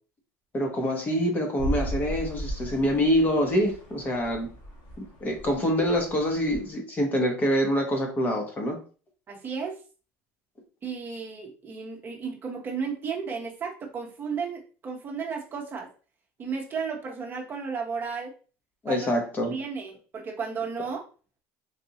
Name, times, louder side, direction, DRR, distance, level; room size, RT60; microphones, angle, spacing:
voice 1, 0.5-4.5 5.2-8.8 18.8-19.5, equal, 25° left, 2 dB, 0.9 m, -25 dB
sound 1, 1.6-6.7, right 1 dB, 50° left, 1.6 m, -36 dB
voice 2, 9.3-9.7 10.8-15.9 16.4-18.3 18.9-19.1 19.5-21.0, right 5 dB, 30° right, 0 dB, 0.8 m, -33 dB
4.0 x 2.6 x 2.8 m, 0.37 s
cardioid pair, 135°, 7 cm